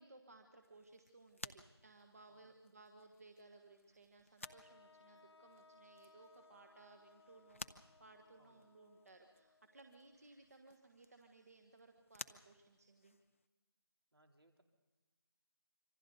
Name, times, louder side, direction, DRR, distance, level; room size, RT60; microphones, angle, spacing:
voice 1, 0.0-13.2, right 3 dB, 35° right, 5 dB, 1.5 m, -62 dB
sound 1, 0.6-13.5, left 3 dB, 30° left, 0.6 m, -57 dB
sound 2, 4.4-10.5, left 3 dB, 75° left, 0.6 m, -66 dB
voice 2, 8.4-8.7 14.1-14.6, right 1 dB, 65° right, 4 dB, 3.3 m, -71 dB
26.5 x 25.0 x 4.0 m, 1.2 s
figure-of-eight pair, 170°, 14 cm